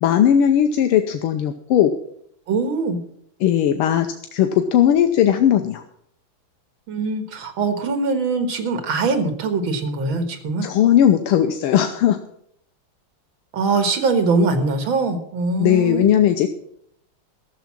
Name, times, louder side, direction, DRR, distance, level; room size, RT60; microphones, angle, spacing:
voice 1, 0.0-2.0 3.4-5.8 10.6-12.2 15.6-16.5, left 10 dB, 85° left, 6 dB, 1.7 m, -17 dB
voice 2, 2.5-3.0 6.9-10.7 13.5-16.1, right 3 dB, 70° right, 8 dB, 2.3 m, -22 dB
13.0 x 7.1 x 7.3 m, 0.68 s
omnidirectional pair, 2.3 m